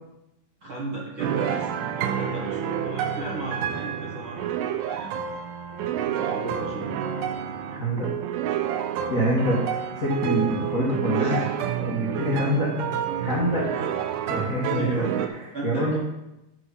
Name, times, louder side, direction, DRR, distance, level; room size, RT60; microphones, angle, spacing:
voice 1, 0.6-5.2 6.0-6.9 11.1-11.4 13.7-13.9 14.7-15.2 15.5-16.0, right 1 dB, 60° right, -5 dB, 1.4 m, -35 dB
sound 1, 1.2-15.3, right 9 dB, 85° right, 2.8 m, -29 dB
voice 2, 7.7-8.1 9.1-11.5 11.8-12.7 13.2-13.7 14.3-15.1 15.6-16.0, equal, 60° left, -6 dB, 0.8 m, -25 dB
12.0 x 4.9 x 5.6 m, 0.93 s
omnidirectional pair, 4.7 m